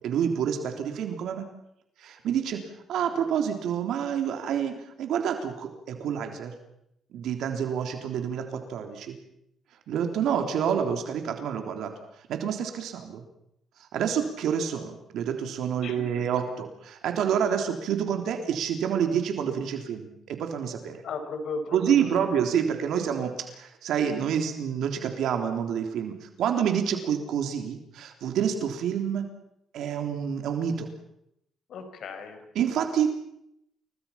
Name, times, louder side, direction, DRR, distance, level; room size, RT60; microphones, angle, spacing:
voice 1, 0.0-1.5 2.0-2.6 2.9-6.5 7.1-9.2 9.9-11.9 12.2-13.2 13.9-21.0 21.7-29.3 29.7-30.9 32.5-33.3, right 8 dB, 80° right, 5 dB, 3.5 m, -28 dB
voice 2, 15.8-16.2 16.6-16.7 21.0-22.3 31.7-32.4, left 3 dB, 70° left, 7 dB, 5.4 m, -36 dB
29.5 x 22.0 x 5.9 m, 0.77 s
cardioid pair, 90°, 0 cm